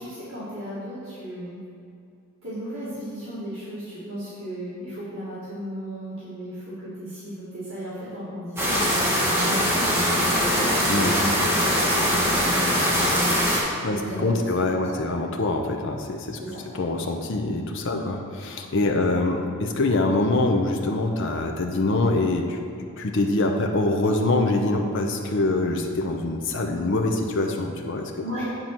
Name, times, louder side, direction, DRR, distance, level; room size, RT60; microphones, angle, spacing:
voice 1, 0.0-1.6 2.4-11.3 11.6-13.4 13.9-14.5 16.4-16.7 17.9-18.0 28.2-28.4, equal, 65° right, -11 dB, 2.0 m, -35 dB
sound 1, 8.6-13.6, equal, 10° right, 1.5 m, -22 dB
voice 2, 13.8-16.4 16.7-28.3, left 2 dB, 60° left, 2 dB, 0.6 m, -24 dB
8.9 x 3.9 x 5.9 m, 2.6 s
head